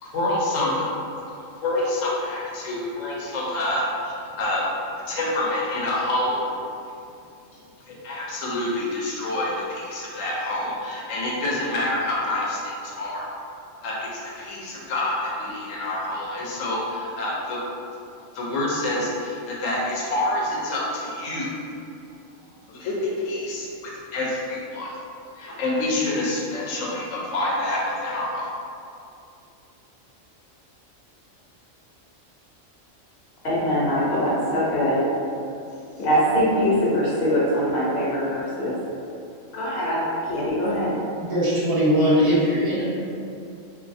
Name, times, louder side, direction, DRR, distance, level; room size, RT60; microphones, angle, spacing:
voice 1, 0.0-0.9 1.2-4.7 5.1-6.6 7.9-13.3 13.8-17.6 18.3-21.5 22.7-24.9 25.4-28.5, left 1 dB, 80° left, -4 dB, 1.0 m, -27 dB
voice 2, 33.4-35.0 36.0-38.8 39.5-41.0, equal, 60° left, -7 dB, 1.0 m, -22 dB
voice 3, 41.2-42.8, equal, 25° right, -9 dB, 0.5 m, -20 dB
3.1 x 2.6 x 2.6 m, 2.6 s
omnidirectional pair, 1.3 m